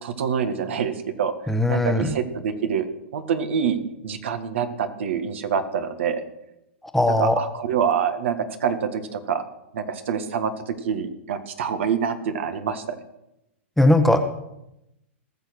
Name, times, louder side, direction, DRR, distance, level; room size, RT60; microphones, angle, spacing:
voice 1, 0.0-1.3 1.7-2.9 3.1-6.2 7.1-9.4 9.7-13.0, right 7 dB, 70° right, 8 dB, 1.8 m, -26 dB
voice 2, 1.5-2.1 6.9-7.4 13.8-14.2, left 1 dB, 5° left, 7 dB, 1.2 m, -18 dB
19.5 x 6.8 x 6.2 m, 0.87 s
hypercardioid pair, 115°, 7 cm